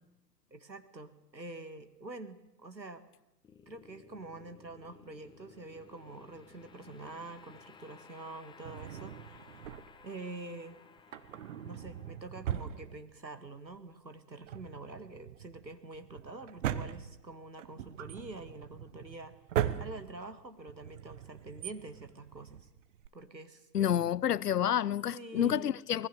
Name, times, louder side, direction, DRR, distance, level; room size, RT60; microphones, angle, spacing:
voice 1, 0.5-3.0 3.7-9.6 10.0-10.8 11.6-19.4 19.8-22.7 23.1-23.9 25.1-25.7, right 2 dB, 90° right, 2.0 m, -46 dB
sound 1, 3.4-14.6, left 5 dB, 10° left, 1.1 m, -58 dB
Drawer open or close, 8.6-10.2 11.0-13.5 13.7-13.8 14.3-23.1, right 10 dB, 45° right, 1.3 m, -40 dB
voice 2, 23.7-26.1, left 10 dB, 65° left, 0.8 m, -29 dB
24.5 x 20.0 x 6.7 m
figure-of-eight pair, 110°, 50 cm